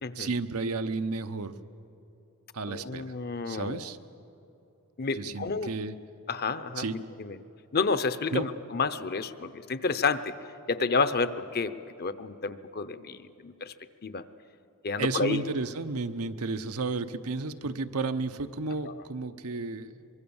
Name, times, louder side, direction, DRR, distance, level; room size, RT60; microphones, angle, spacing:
voice 1, 0.2-1.6 2.5-3.0 3.5-4.0 5.1-5.9 6.8-7.0 8.3-8.5 15.0-19.9, right 3 dB, 90° right, 9 dB, 0.9 m, -32 dB
voice 2, 2.7-3.9 5.0-5.7 6.3-7.4 7.7-10.3 10.7-11.7 12.0-13.7 14.0-14.2 14.8-15.4 18.8-19.0, left 4 dB, 45° left, 13 dB, 0.8 m, -30 dB
24.5 x 22.5 x 7.2 m, 2.9 s
head